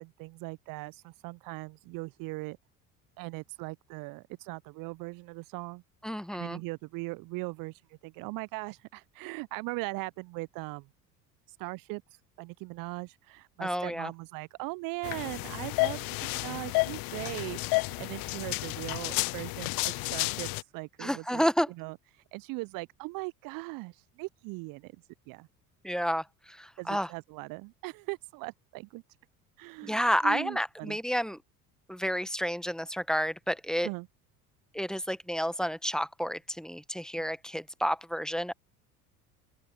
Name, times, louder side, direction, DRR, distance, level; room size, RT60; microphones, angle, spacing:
voice 1, 0.0-2.6 3.2-5.8 6.3-10.9 11.5-12.0 12.4-21.4 21.8-24.9 25.3-25.5 26.8-29.0 29.6-31.0 33.8-34.1 37.1-37.3, right 26 dB, 45° right, 0.6 m, -39 dB
voice 2, 6.0-6.6 13.6-14.1 21.0-21.7 25.8-27.1 29.8-31.4 31.9-33.9 34.7-38.5, equal, ahead, 1.4 m, -30 dB
sound 1, 15.0-20.6, left 28 dB, 50° left, 0.7 m, -31 dB
open air
figure-of-eight pair, 65°, 46 cm